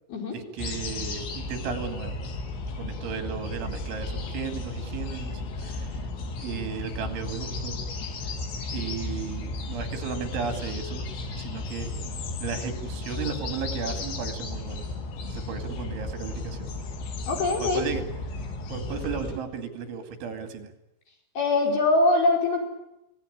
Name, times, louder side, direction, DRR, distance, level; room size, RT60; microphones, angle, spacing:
voice 1, 0.3-2.2 2.8-6.0 6.4-7.8 8.2-8.3 8.7-11.0 11.4-11.9 12.4-14.8 15.3-16.7 17.6-18.0 18.7-20.7, right 6 dB, 80° right, 7 dB, 4.7 m, -35 dB
sound 1, 0.6-19.4, left 2 dB, 70° left, 4.7 m, -34 dB
voice 2, 17.3-17.8 21.3-22.6, left 2 dB, 55° left, 0 dB, 6.9 m, -22 dB
24.5 x 18.0 x 9.9 m, 0.86 s
omnidirectional pair, 5.4 m